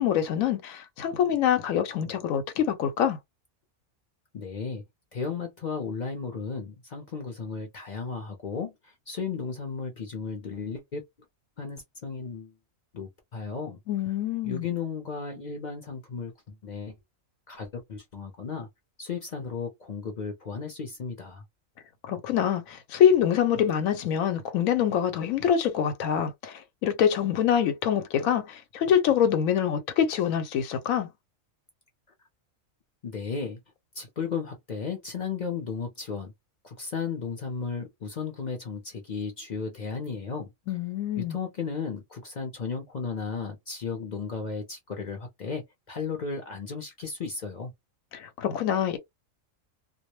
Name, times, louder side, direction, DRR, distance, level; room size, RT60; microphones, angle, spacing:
voice 1, 0.0-3.2 13.9-14.7 22.0-31.1 40.7-41.4 48.1-49.0, left 9 dB, 90° left, 1.0 m, -25 dB
voice 2, 4.3-4.8 5.1-11.0 11.6-12.5 12.9-13.8 14.4-17.0 17.5-18.7 19.0-21.4 33.0-33.6 33.9-36.3 36.6-40.5 41.2-47.7, left 5 dB, 50° left, 0.5 m, -34 dB
2.3 x 2.1 x 2.9 m
omnidirectional pair, 1.4 m